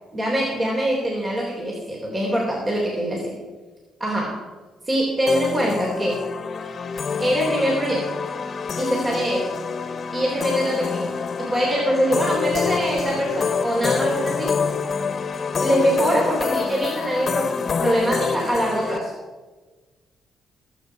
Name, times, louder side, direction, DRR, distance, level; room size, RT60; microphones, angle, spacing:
voice 1, 0.1-3.3 4.0-4.4 4.9-6.2 7.2-8.1 8.8-9.4 10.1-14.6 15.6-19.1, equal, 30° right, -2 dB, 3.7 m, -23 dB
sound 1, 5.3-19.0, left 5 dB, 45° left, 1.3 m, -26 dB
20.5 x 8.4 x 4.8 m, 1.3 s
cardioid pair, 90°, 0 cm